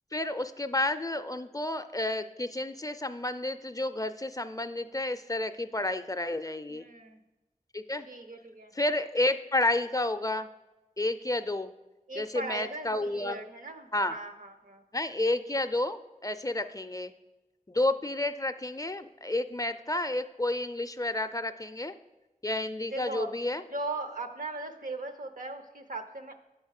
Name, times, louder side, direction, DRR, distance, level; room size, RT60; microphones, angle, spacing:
voice 1, 0.1-6.8 7.7-8.1 8.7-10.5 11.0-11.7 12.2-13.4 13.9-14.1 14.9-17.1 17.7-21.9 22.4-23.6, left 2 dB, 25° left, 11 dB, 0.4 m, -30 dB
voice 2, 6.7-7.2 8.1-8.7 12.1-14.8 22.9-23.3 23.7-26.3, right 2 dB, 75° right, 6 dB, 0.8 m, -39 dB
8.9 x 4.4 x 6.4 m, 1.0 s
wide cardioid pair, 45°, 14 cm